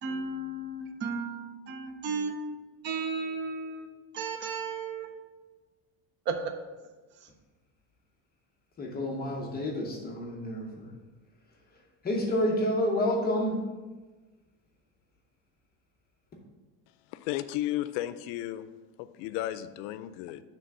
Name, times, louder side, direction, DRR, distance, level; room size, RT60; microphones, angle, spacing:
voice 1, 0.0-2.4 2.8-3.9 4.1-5.1 6.3-6.5, right 4 dB, 25° right, 0.3 m, -34 dB
voice 2, 8.8-10.9 12.0-13.6, left 1 dB, 20° left, 0.6 m, -29 dB
voice 3, 17.1-18.7 19.0-20.4, left 14 dB, 85° left, 0.5 m, -34 dB
6.7 x 3.5 x 5.9 m
cardioid pair, 175°, 48 cm